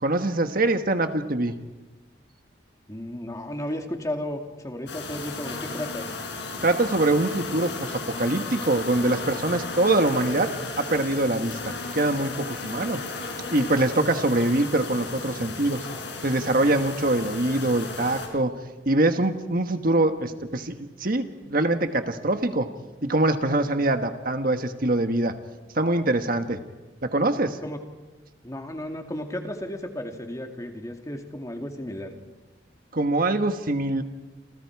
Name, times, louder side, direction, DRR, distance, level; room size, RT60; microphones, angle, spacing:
voice 1, 0.0-1.5 6.6-10.5 10.8-13.0 13.5-15.9 16.2-18.5 18.8-22.7 23.0-25.3 25.7-26.6 27.0-27.6 32.9-34.0, right 2 dB, 50° right, 7 dB, 1.5 m, -24 dB
voice 2, 2.9-6.1 27.6-27.8 28.4-32.1, left 1 dB, 20° left, 4 dB, 2.3 m, -34 dB
sound 1, 4.9-18.3, left 3 dB, 65° left, 5.6 m, -35 dB
28.5 x 28.0 x 4.8 m, 1.2 s
head